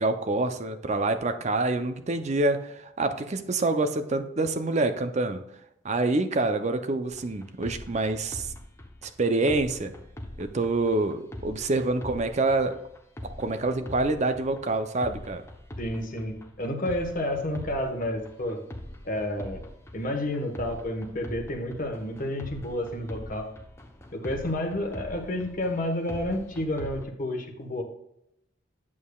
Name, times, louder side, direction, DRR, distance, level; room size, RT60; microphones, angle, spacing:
voice 1, 0.0-5.4 5.8-8.5 9.0-9.9 10.4-12.8 13.4-15.4, right 2 dB, 35° right, 8 dB, 0.6 m, -26 dB
sound 1, 7.1-27.0, left 1 dB, 15° left, 0.8 m, -43 dB
voice 2, 15.8-18.6 19.0-19.7 19.9-23.5 24.1-27.8, left 1 dB, 45° left, 3 dB, 1.3 m, -30 dB
8.5 x 7.3 x 2.4 m, 0.78 s
head